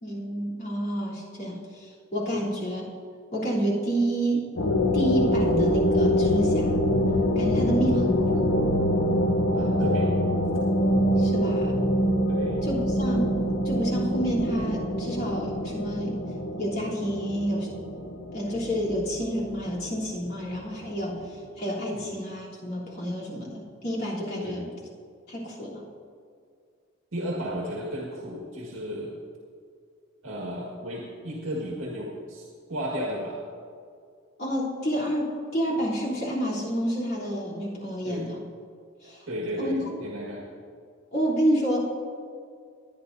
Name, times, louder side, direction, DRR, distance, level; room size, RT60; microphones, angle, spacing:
voice 1, 0.0-2.8 3.3-4.4 4.9-6.8 7.4-8.5 11.2-11.8 12.6-13.3 13.6-16.2 16.6-17.7 18.3-24.7 25.3-25.8 34.4-38.4 39.0-39.3 39.6-39.8 41.1-41.9, equal, 50° left, -7 dB, 3.3 m, -29 dB
sound 1, 4.6-20.8, equal, 65° left, 0.8 m, -25 dB
voice 2, 9.5-10.3 12.3-12.6 21.9-22.1 24.4-24.6 27.1-29.2 30.2-33.4 38.0-38.3 39.3-40.4, equal, 75° right, -3 dB, 1.8 m, -34 dB
21.5 x 9.7 x 2.7 m, 2.2 s
head